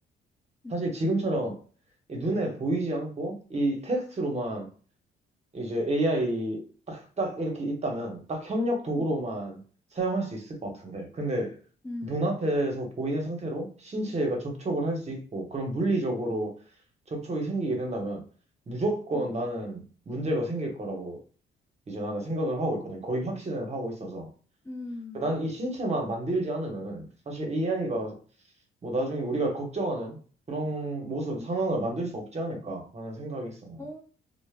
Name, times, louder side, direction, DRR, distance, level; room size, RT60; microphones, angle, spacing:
voice 1, 0.7-1.6 2.1-4.7 5.5-9.6 9.9-11.6 12.0-16.6 17.1-18.2 18.7-21.2 21.9-24.3 25.1-28.2 28.8-30.2 30.5-33.8, right 1 dB, 35° right, 0.9 m, -30 dB
voice 2, 11.8-12.3 19.1-19.3 24.6-25.3 31.4-31.5 33.8-34.0, left 2 dB, 15° left, 0.4 m, -39 dB
2.1 x 2.0 x 3.3 m
cardioid pair, 90°, 20 cm